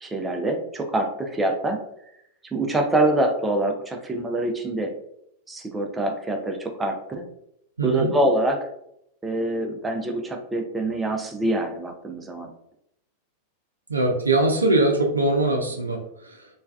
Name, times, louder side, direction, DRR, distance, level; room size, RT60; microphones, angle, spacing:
voice 1, 0.0-1.8 2.5-4.9 5.5-7.2 7.8-8.6 9.2-12.5, right 1 dB, 15° right, 3 dB, 0.4 m, -25 dB
voice 2, 7.8-8.1 13.9-16.5, right 2 dB, 80° right, 2 dB, 0.4 m, -22 dB
3.2 x 2.2 x 2.3 m, 0.77 s
figure-of-eight pair, 90°, 0 cm